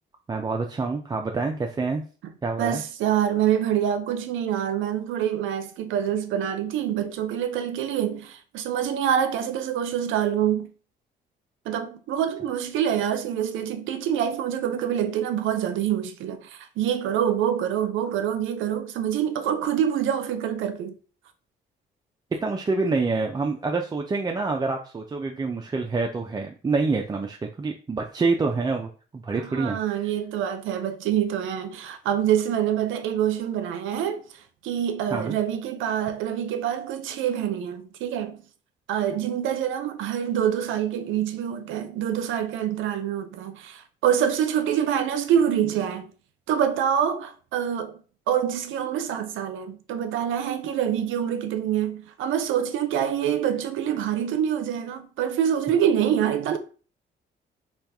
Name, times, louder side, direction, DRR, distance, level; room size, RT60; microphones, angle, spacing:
voice 1, 0.3-2.0 2.4-2.8 22.4-30.0 35.1-35.3 35.9-36.0, right 4 dB, 20° right, 0.3 m, -27 dB
voice 2, 2.6-10.7 11.7-21.0 29.3-34.2 34.6-38.4 38.9-46.1 46.5-48.0 48.3-56.6, right 9 dB, 85° right, 0.5 m, -26 dB
2.8 x 2.3 x 3.4 m
cardioid pair, 90°, 20 cm